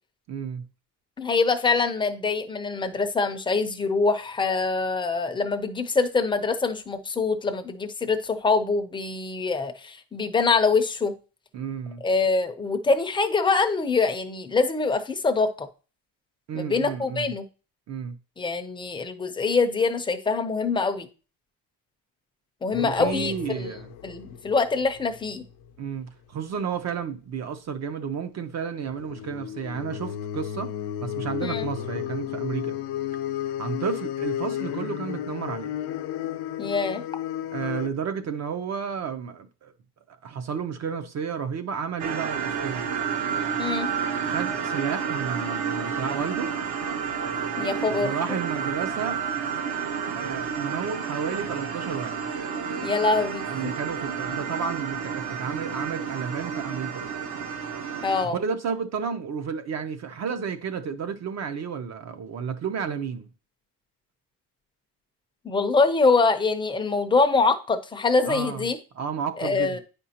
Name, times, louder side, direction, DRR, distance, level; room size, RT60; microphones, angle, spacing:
voice 1, 0.3-0.6 11.5-12.0 16.5-17.3 17.9-18.2 22.8-23.9 25.8-30.7 31.0-32.8 33.6-35.7 37.5-39.7 40.1-42.8 44.2-46.5 48.0-49.2 50.2-52.2 53.5-57.1 58.2-63.3 68.3-68.6 69.0-69.8, right 6 dB, 45° right, 0.6 m, -32 dB
voice 2, 1.2-11.1 12.0-15.7 16.5-17.4 18.4-21.1 22.6-23.7 24.0-25.4 31.4-31.7 36.6-37.0 43.6-43.9 47.6-48.4 52.8-53.7 58.0-58.4 65.4-68.8 69.4-69.8, left 4 dB, 10° left, 0.5 m, -24 dB
sound 1, 22.7-25.7 28.8-37.9, left 11 dB, 80° left, 0.7 m, -33 dB
sound 2, 42.0-58.3, right 7 dB, 65° right, 1.0 m, -30 dB
9.2 x 5.2 x 2.8 m
cardioid pair, 160°, 39 cm